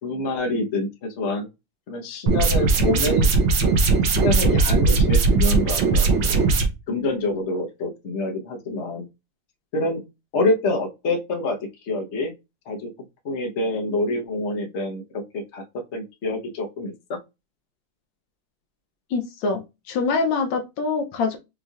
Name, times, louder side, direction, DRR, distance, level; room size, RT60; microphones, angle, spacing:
voice 1, 0.0-1.5 1.9-3.3 4.2-6.4 6.9-9.1 9.7-10.0 10.3-11.6 11.8-12.3 12.7-12.9 13.2-15.6 15.9-16.9, left 2 dB, 45° left, 1.0 m, -26 dB
sound 1, 2.3-6.7, right 4 dB, 85° right, 1.8 m, -19 dB
voice 2, 19.1-19.6 19.9-21.4, left 4 dB, 80° left, 1.5 m, -24 dB
5.4 x 3.1 x 2.4 m
omnidirectional pair, 2.2 m